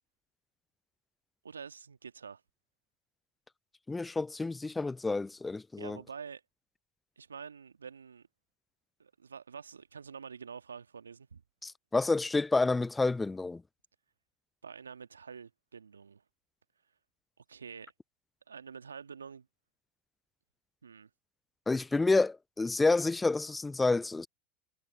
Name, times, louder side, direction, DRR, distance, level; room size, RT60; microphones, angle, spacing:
voice 1, 1.4-2.4 5.8-6.4 7.2-8.3 9.0-11.4 14.6-16.2 17.4-17.9 18.5-19.5 20.8-21.1, right 6 dB, 85° right, 1.6 m, -47 dB
voice 2, 3.9-6.0 11.6-13.6 21.7-24.3, left 3 dB, 15° left, 0.3 m, -29 dB
figure-of-eight pair, 80°, 0 cm